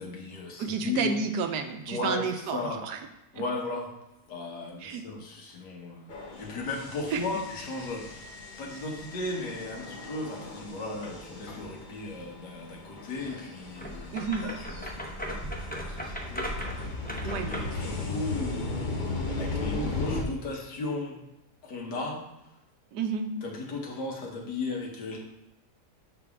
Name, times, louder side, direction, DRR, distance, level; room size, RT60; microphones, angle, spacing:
voice 1, 0.0-1.2 1.9-2.8 3.3-3.9 4.3-8.3 8.6-18.9 19.3-21.2 21.6-22.2 23.4-25.2, left 2 dB, 85° left, -1 dB, 1.9 m, -36 dB
voice 2, 0.6-3.0 3.4-3.5 4.8-5.0 7.1-7.2 14.1-14.5 17.2-17.5 22.9-23.3, right 5 dB, 90° right, 6 dB, 1.3 m, -31 dB
sound 1, 6.1-20.2, left 3 dB, 35° left, 0.9 m, -37 dB
sound 2, 13.7-17.8, equal, 10° left, 0.5 m, -37 dB
7.0 x 5.9 x 3.5 m, 0.95 s
omnidirectional pair, 1.7 m